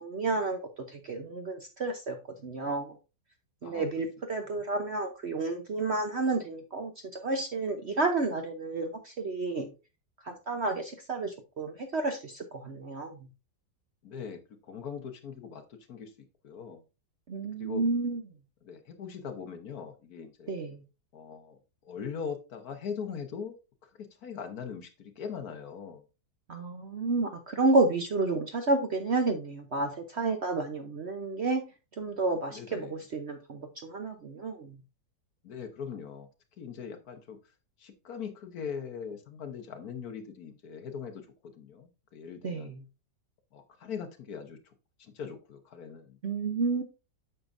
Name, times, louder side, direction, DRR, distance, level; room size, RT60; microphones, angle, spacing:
voice 1, 0.0-2.2 2.4-2.9 3.6-9.7 10.2-13.1 17.3-18.2 20.5-20.8 26.5-31.6 32.0-34.7 42.4-42.8 46.2-46.8, right 3 dB, 50° right, 5 dB, 0.9 m, -30 dB
voice 2, 14.0-16.1 16.4-16.8 17.6-17.9 18.6-20.5 21.1-23.6 24.0-26.0 32.5-33.0 35.4-36.3 36.6-37.4 37.8-42.7 43.5-44.7 45.0-46.2, left 6 dB, 60° left, 7 dB, 1.4 m, -41 dB
8.5 x 6.8 x 2.5 m, 0.29 s
omnidirectional pair, 1.9 m